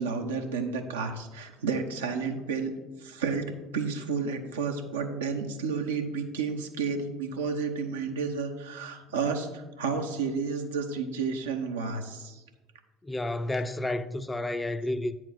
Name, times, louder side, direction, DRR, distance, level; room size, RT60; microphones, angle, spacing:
voice 1, 0.0-3.5 3.7-12.4, right 5 dB, 80° right, 0.9 m, -31 dB
voice 2, 13.0-15.2, left 1 dB, 15° left, 0.5 m, -31 dB
8.9 x 4.6 x 5.9 m
figure-of-eight pair, 60°, 0 cm